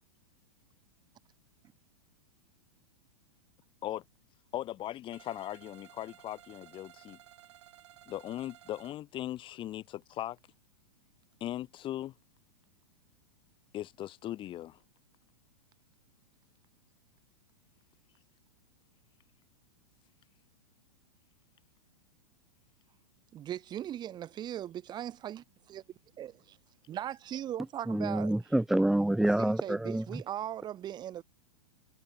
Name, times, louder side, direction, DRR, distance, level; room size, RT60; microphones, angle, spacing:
voice 1, 4.5-7.2 8.1-10.4 11.4-12.1 13.7-14.8, left 13 dB, 30° left, 1.7 m, -39 dB
sound 1, 5.1-9.0, right 14 dB, 60° right, 2.3 m, -56 dB
voice 2, 23.3-25.8 26.2-26.6 26.9-28.3 29.4-31.2, right 11 dB, 25° right, 1.2 m, -39 dB
voice 3, 27.9-30.2, right 1 dB, ahead, 0.3 m, -27 dB
hypercardioid pair, 105°, 17 cm